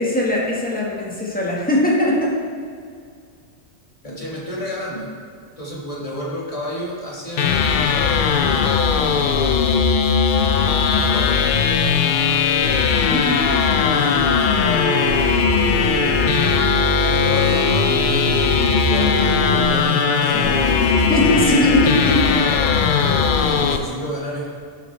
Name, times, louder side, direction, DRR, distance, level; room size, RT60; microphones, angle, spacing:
voice 1, 0.0-2.3 13.1-13.4 21.1-22.4, left 1 dB, 5° left, -4 dB, 1.4 m, -19 dB
voice 2, 4.0-5.1 5.6-7.5 9.0-9.3 10.9-11.6 13.9-14.7 16.9-21.5 23.4-24.5, equal, 30° left, -5 dB, 1.7 m, -30 dB
sound 1, 7.4-23.8, left 6 dB, 60° left, 0.5 m, -18 dB
Telephone, 14.6-19.6, right 4 dB, 75° right, 2.6 m, -26 dB
11.0 x 6.2 x 3.3 m, 2.1 s
omnidirectional pair, 1.3 m